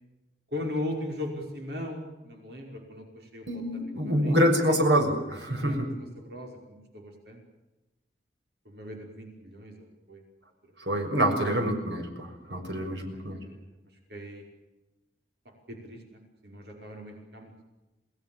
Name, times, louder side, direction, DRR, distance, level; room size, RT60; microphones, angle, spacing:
voice 1, 0.5-4.4 4.7-4.8 5.6-7.4 8.7-10.2 10.6-10.9 12.5-13.7 14.1-14.4 15.5-17.6, left 1 dB, 70° right, 2 dB, 5.4 m, -39 dB
voice 2, 3.5-5.9 10.9-13.4, equal, 90° right, 4 dB, 6.4 m, -26 dB
29.0 x 19.5 x 7.2 m, 1.0 s
head